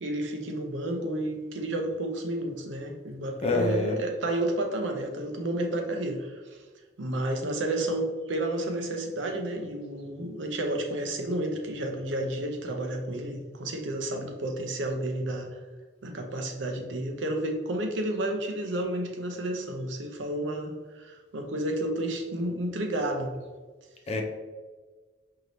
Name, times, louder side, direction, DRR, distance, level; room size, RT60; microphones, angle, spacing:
voice 1, 0.0-6.3 7.0-15.6 16.0-23.3, right 1 dB, 75° right, 4 dB, 0.6 m, -31 dB
voice 2, 3.4-4.0 24.1-24.2, left 2 dB, 35° left, 1 dB, 0.5 m, -25 dB
4.7 x 3.0 x 2.6 m, 1.4 s
head